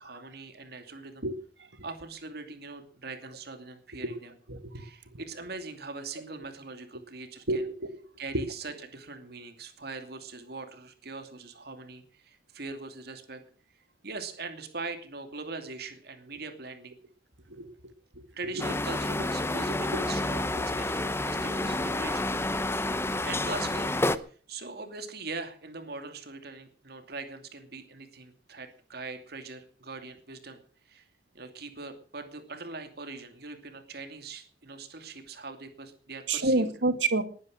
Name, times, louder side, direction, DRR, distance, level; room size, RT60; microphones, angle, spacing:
voice 1, 0.0-1.3 1.8-4.3 4.7-7.6 8.2-13.4 14.0-17.0 18.4-22.3 22.8-24.0 24.2-30.6 30.9-31.0 31.3-36.7, right 3 dB, 60° right, 7 dB, 2.6 m, -41 dB
voice 2, 4.5-4.8 7.5-7.6 7.9-8.0 8.3-8.4 17.5-17.9 18.5-18.6 36.3-37.2, right 2 dB, 85° right, 10 dB, 2.0 m, -28 dB
sound 1, 18.6-24.2, left 2 dB, 15° left, 0.8 m, -29 dB
20.0 x 10.0 x 6.5 m, 0.43 s
head